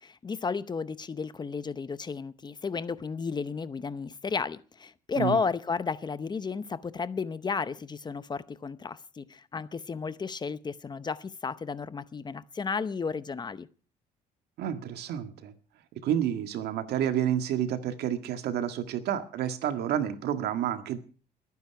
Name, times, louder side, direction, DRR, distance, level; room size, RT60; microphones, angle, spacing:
voice 1, 0.0-13.7, left 5 dB, 25° left, 0.7 m, -33 dB
voice 2, 14.6-15.5 16.0-21.0, right 10 dB, 75° right, 1.8 m, -29 dB
21.0 x 9.6 x 5.9 m
cardioid pair, 110°, 17 cm